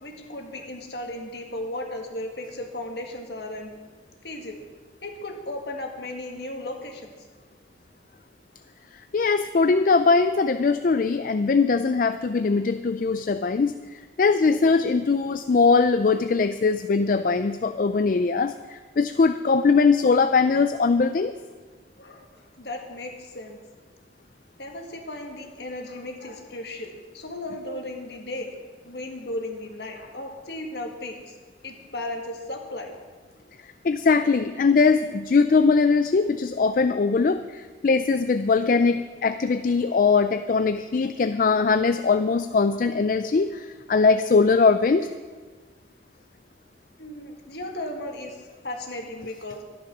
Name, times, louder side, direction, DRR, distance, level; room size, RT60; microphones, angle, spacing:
voice 1, 0.0-3.7 4.2-4.6 5.0-7.3 22.0-23.6 24.6-28.5 28.8-31.4 31.6-32.9 47.0-49.6, left 1 dB, 65° left, 3 dB, 1.8 m, -35 dB
voice 2, 9.1-21.3 33.8-45.1, left 4 dB, 50° left, 11 dB, 0.4 m, -21 dB
13.0 x 11.0 x 6.0 m, 1.4 s
head